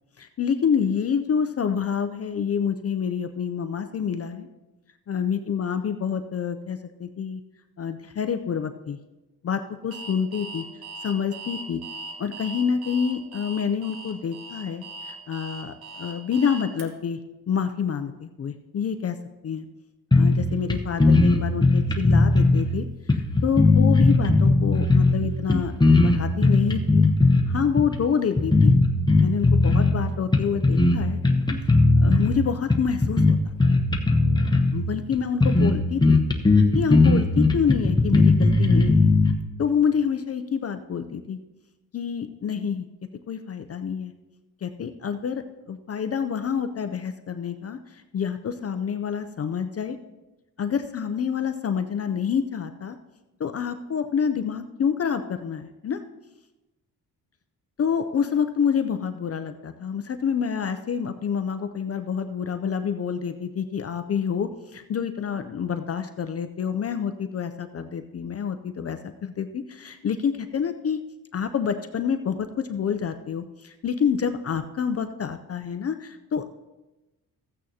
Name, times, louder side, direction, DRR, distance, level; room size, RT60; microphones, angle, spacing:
voice 1, 0.2-4.5 5.1-7.4 7.8-9.0 9.4-10.6 11.0-11.8 12.2-17.2 17.5-19.2 19.4-19.7 20.1-27.1 27.5-28.7 29.1-31.2 32.0-33.5 34.7-36.2 36.7-39.1 39.6-41.4 41.9-42.9 43.3-44.1 44.6-50.0 50.6-53.0 53.4-56.0 57.8-71.0 71.3-76.5, left 7 dB, 40° left, 8 dB, 0.5 m, -27 dB
Alarm, 9.9-16.8, right 3 dB, 80° right, 1.5 m, -39 dB
sound 1, 20.1-20.4 20.7-20.8 21.0-22.6 23.1-25.2 25.5-27.4 27.8-28.0 28.4-30.0 30.3-31.0 31.2-32.3 32.7-34.8 35.1-35.2 35.4-35.7 36.0-39.3, left 3 dB, 10° left, 0.9 m, -18 dB
14.5 x 8.8 x 2.8 m, 1.1 s
cardioid pair, 120°, 36 cm